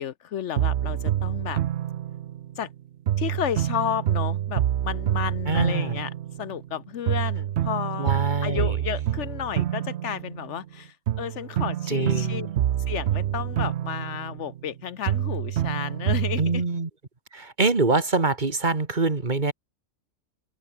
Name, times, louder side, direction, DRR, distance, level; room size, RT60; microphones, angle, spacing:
voice 1, 0.0-1.6 2.6-2.7 3.2-6.1 6.4-8.1 8.4-12.5 12.9-16.6, left 9 dB, 65° left, 1.0 m, -32 dB
sound 1, 0.6-2.7 3.1-6.8 7.1-10.7 11.1-14.8 15.1-16.6, right 11 dB, 65° right, 0.9 m, -27 dB
voice 2, 5.5-6.0 8.0-8.8 11.9-12.5 16.4-16.9 17.3-19.5, right 3 dB, 35° right, 1.9 m, -24 dB
open air
omnidirectional pair, 1.4 m